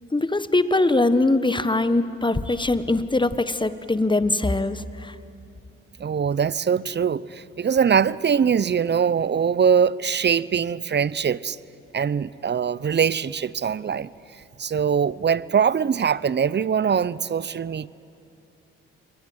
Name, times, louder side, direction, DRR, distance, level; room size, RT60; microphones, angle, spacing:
voice 1, 0.1-5.1, left 2 dB, 15° left, 13 dB, 1.4 m, -22 dB
voice 2, 6.0-11.6 11.9-14.1 14.6-17.9, right 7 dB, 35° right, 20 dB, 0.7 m, -22 dB
29.0 x 21.5 x 8.0 m, 2.6 s
hypercardioid pair, 50°, 30 cm